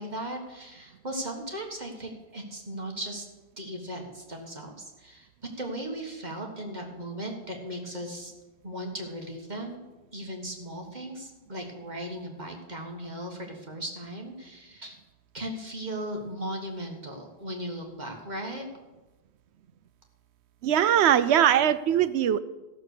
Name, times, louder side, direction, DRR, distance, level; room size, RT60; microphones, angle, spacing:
voice 1, 0.0-3.3 3.6-8.3 8.6-9.8 10.1-15.0 15.3-18.7, right 1 dB, 40° right, 2 dB, 1.7 m, -37 dB
voice 2, 20.6-22.4, right 10 dB, 85° right, 14 dB, 0.9 m, -21 dB
14.0 x 6.7 x 6.6 m, 1.1 s
omnidirectional pair, 1.1 m